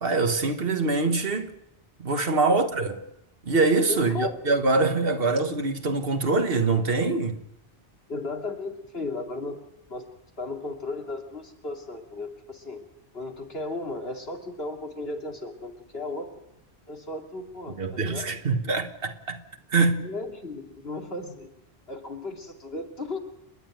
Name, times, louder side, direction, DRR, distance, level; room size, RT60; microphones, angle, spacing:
voice 1, 0.0-1.5 2.0-3.0 3.4-7.4 17.8-19.4 19.7-20.1, right 3 dB, 65° right, 1.6 m, -24 dB
voice 2, 3.9-4.3 8.1-9.6 9.9-10.1 10.4-12.8 13.1-16.3 16.9-18.3 20.0-21.5 21.9-23.2, left 2 dB, 70° left, 2.8 m, -35 dB
29.5 x 10.0 x 9.1 m
omnidirectional pair, 1.1 m